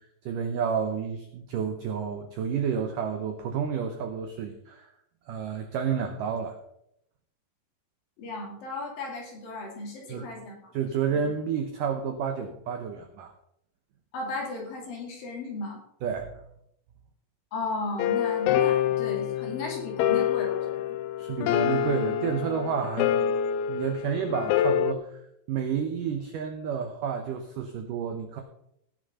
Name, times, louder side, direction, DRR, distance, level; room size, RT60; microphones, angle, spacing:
voice 1, 0.2-4.9 5.3-6.6 10.1-10.3 10.7-13.3 16.0-16.4 21.2-23.3 23.7-25.1 25.5-28.4, right 7 dB, 80° right, 5 dB, 1.9 m, -30 dB
voice 2, 8.2-10.7 11.1-11.2 14.1-15.8 17.5-20.9, left 3 dB, 55° left, 0 dB, 4.1 m, -35 dB
sound 1, 18.0-24.9, left 9 dB, 90° left, 2.1 m, -26 dB
17.0 x 6.5 x 5.5 m, 0.75 s
omnidirectional pair, 5.1 m